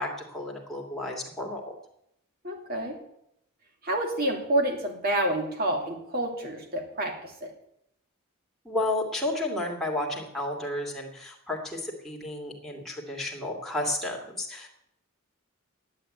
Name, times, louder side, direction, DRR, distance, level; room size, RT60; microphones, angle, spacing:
voice 1, 0.0-1.8 8.6-14.7, left 1 dB, ahead, -2 dB, 2.6 m, -32 dB
voice 2, 2.4-3.0 3.8-7.5, right 1 dB, 45° right, 2 dB, 2.8 m, -28 dB
11.0 x 8.6 x 8.8 m, 0.78 s
head